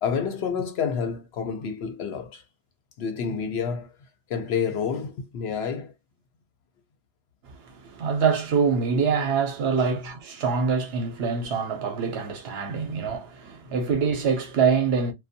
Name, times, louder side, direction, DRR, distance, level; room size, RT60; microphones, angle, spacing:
voice 1, 0.0-2.4 3.0-3.9 4.3-5.9 12.8-12.9, left 6 dB, 70° left, 0.8 m, -29 dB
voice 2, 7.6-15.1, right 5 dB, 65° right, 0.9 m, -25 dB
2.5 x 2.2 x 2.5 m
omnidirectional pair, 1.1 m